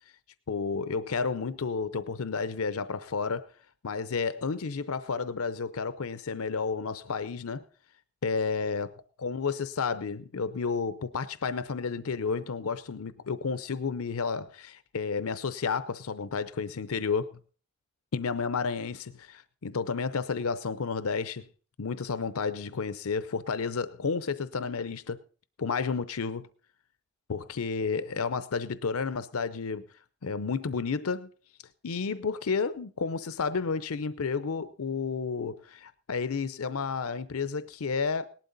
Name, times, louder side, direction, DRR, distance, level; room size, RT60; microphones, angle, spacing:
voice 1, 0.5-3.5 3.8-7.6 8.2-8.9 9.2-17.4 18.1-21.5 21.8-25.2 25.6-26.5 27.3-29.8 30.2-31.3 31.8-38.3, left 5 dB, 85° left, 0.6 m, -31 dB
18.5 x 12.0 x 4.0 m
head